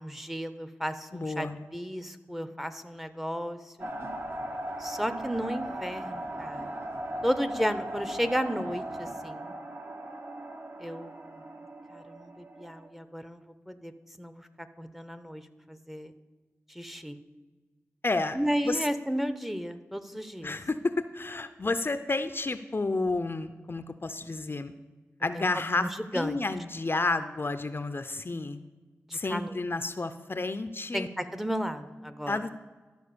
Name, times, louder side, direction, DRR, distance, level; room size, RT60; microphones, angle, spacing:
voice 1, 0.0-3.9 4.8-6.8 7.2-9.6 10.8-11.4 11.9-13.9 14.2-15.4 15.7-16.1 16.7-17.2 18.3-20.6 25.3-25.5 25.7-26.4 29.1-29.5 30.9-32.4, equal, 5° right, 10 dB, 0.7 m, -33 dB
voice 2, 1.1-1.6 18.0-18.4 18.6-18.9 20.4-24.7 25.2-28.6 29.1-31.1 32.3-32.5, left 3 dB, 45° left, 11 dB, 0.5 m, -31 dB
sound 1, 3.8-12.9, right 1 dB, 45° right, 1.2 m, -38 dB
12.5 x 4.6 x 6.7 m, 1.3 s
cardioid pair, 45°, 5 cm